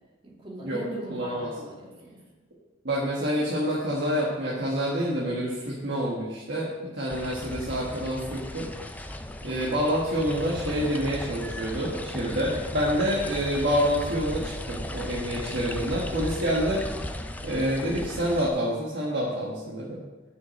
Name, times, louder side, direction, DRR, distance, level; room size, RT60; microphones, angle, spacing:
voice 1, 0.2-2.2 13.1-13.2, right 2 dB, 25° right, -3 dB, 2.4 m, -40 dB
voice 2, 1.1-1.5 2.8-8.7 9.4-16.8 17.4-20.0, equal, 55° right, -5 dB, 1.6 m, -27 dB
sound 1, 7.1-18.5, left 1 dB, 10° left, 0.4 m, -36 dB
7.0 x 6.4 x 7.7 m, 1.3 s
head